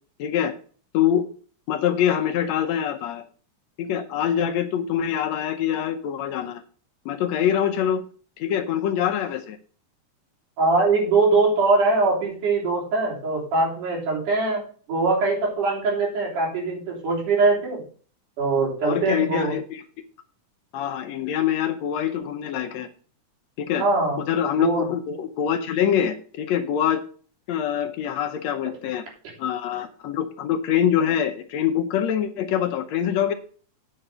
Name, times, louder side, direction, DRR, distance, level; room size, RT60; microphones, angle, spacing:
voice 1, 0.2-0.6 0.9-1.3 1.7-3.2 3.8-6.6 7.1-8.0 8.4-9.6 18.8-19.8 20.7-22.9 23.6-23.8 24.2-27.0 27.5-29.0 29.4-33.3, left 9 dB, 70° left, 7 dB, 1.8 m, -24 dB
voice 2, 10.6-14.6 14.9-17.8 18.4-19.5 23.8-24.2 24.6-24.8, right 3 dB, 85° right, -2 dB, 4.9 m, -22 dB
8.8 x 5.8 x 6.7 m, 0.43 s
omnidirectional pair, 3.6 m